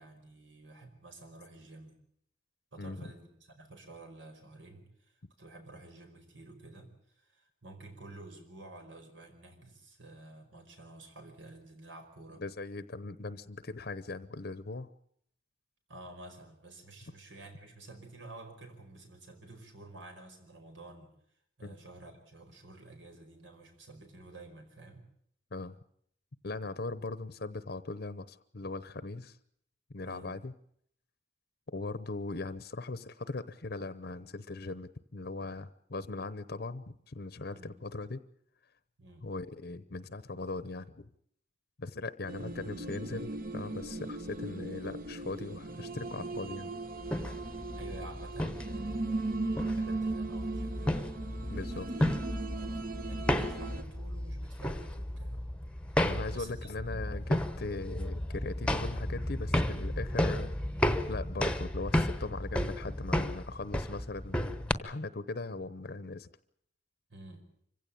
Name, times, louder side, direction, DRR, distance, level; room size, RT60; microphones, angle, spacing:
voice 1, 0.0-2.0 2.7-12.4 15.9-21.1 21.6-25.1 30.0-30.4 37.5-37.7 39.0-39.3 47.8-52.0 52.5-55.4 55.9-56.0 56.3-56.8 67.1-67.5, right 2 dB, 90° right, 5 dB, 5.2 m, -51 dB
voice 2, 12.4-14.9 21.6-21.7 25.5-25.8 26.4-29.4 29.9-30.5 31.7-38.2 39.2-41.0 41.8-46.7 51.5-51.9 56.0-60.5 61.1-66.3, left 3 dB, 55° left, 14 dB, 0.8 m, -39 dB
sound 1, 42.3-53.8, right 2 dB, 50° right, 1.3 m, -38 dB
sound 2, 47.0-64.7, left 1 dB, 5° left, 1.0 m, -33 dB
25.5 x 16.0 x 8.7 m, 0.68 s
head